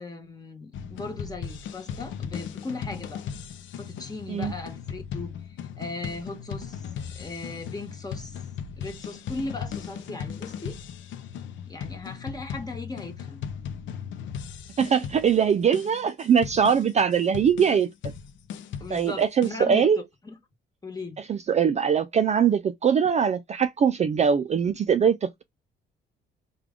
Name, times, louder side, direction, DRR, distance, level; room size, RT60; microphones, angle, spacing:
voice 1, 0.0-3.2 3.7-6.9 7.1-8.4 8.8-10.8 11.7-13.4 18.8-19.9 20.2-20.3 20.8-21.2, left 2 dB, 20° left, 1.2 m, -38 dB
sound 1, 0.7-19.5, left 7 dB, 75° left, 0.5 m, -37 dB
voice 2, 14.8-18.1 18.9-20.0 21.3-25.4, right 7 dB, 35° right, 0.4 m, -22 dB
3.3 x 2.3 x 3.6 m
cardioid pair, 90°, 20 cm